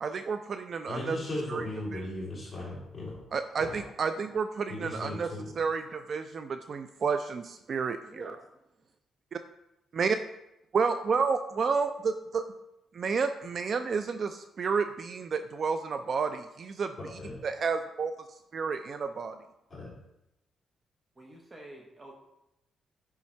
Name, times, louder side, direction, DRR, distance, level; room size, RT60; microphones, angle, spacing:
voice 1, 0.0-1.2 1.5-1.6 1.9-2.0 3.3-5.3 5.6-8.3 9.3-9.4 9.9-10.2 10.7-12.4 12.9-16.9 17.4-18.1 18.5-19.4, right 5 dB, 45° right, 8 dB, 0.3 m, -30 dB
voice 2, 0.9-3.2 3.6-3.8 4.7-5.5 17.0-17.4 19.7-19.9, left 1 dB, 20° left, -6 dB, 2.9 m, -37 dB
voice 3, 3.3-3.9 8.0-8.4 21.2-22.1, right 1 dB, 20° right, 0 dB, 0.9 m, -49 dB
10.0 x 3.6 x 4.3 m, 0.87 s
cardioid pair, 145°, 0 cm